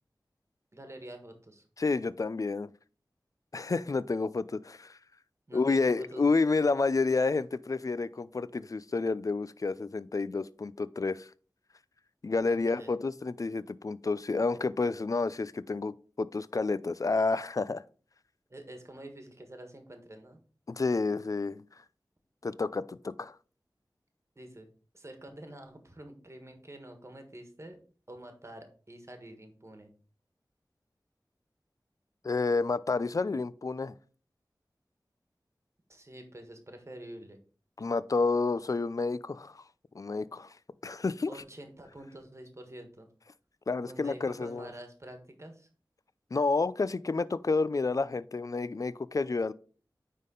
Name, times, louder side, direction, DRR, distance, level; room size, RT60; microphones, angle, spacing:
voice 1, 0.7-1.6 5.5-6.2 12.5-12.9 18.5-20.4 24.3-24.7 24.9-27.8 28.1-29.9 35.9-37.4 41.3-43.1 43.9-45.7, right 1 dB, 40° right, 1.4 m, -47 dB
voice 2, 1.8-2.7 3.5-5.0 5.5-11.3 12.2-17.8 20.7-21.6 22.4-23.4 32.2-33.9 37.8-39.6 39.9-40.5 40.8-41.3 43.7-44.7 46.3-49.5, left 3 dB, 50° left, 0.4 m, -30 dB
9.5 x 3.7 x 3.8 m
wide cardioid pair, 55°, 8 cm